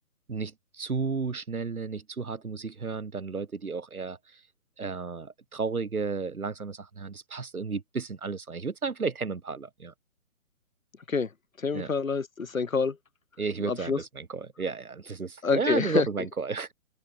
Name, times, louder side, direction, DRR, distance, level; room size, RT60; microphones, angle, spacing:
voice 1, 0.3-4.4 4.8-9.9 11.7-11.9 13.4-16.7, right 4 dB, 85° right, 1.1 m, -33 dB
voice 2, 11.6-13.0 13.7-14.0 15.4-16.1, left 5 dB, 70° left, 1.9 m, -27 dB
figure-of-eight pair, 135°, 43 cm